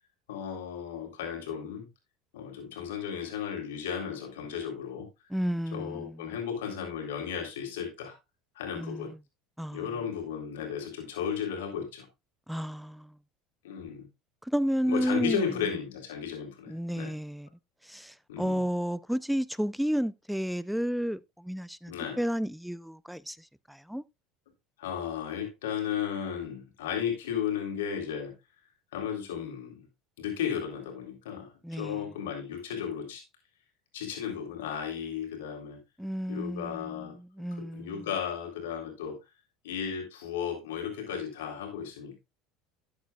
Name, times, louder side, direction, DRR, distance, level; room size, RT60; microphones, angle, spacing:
voice 1, 0.3-1.9 2.3-5.1 5.7-8.1 8.6-9.1 9.7-12.1 13.6-14.1 14.9-17.1 18.3-18.6 21.9-22.2 24.8-28.3 28.9-29.9 30.2-33.2 33.9-35.8 36.3-37.1 37.6-39.2 39.6-42.2, left 8 dB, 90° left, 3.8 m, -34 dB
voice 2, 5.3-6.3 8.7-9.2 9.6-9.9 12.5-13.2 14.4-15.5 16.7-17.5 17.8-24.0 31.6-32.0 36.0-38.1, equal, ahead, 0.6 m, -32 dB
12.5 x 8.3 x 2.4 m
supercardioid pair, 95°, 0 cm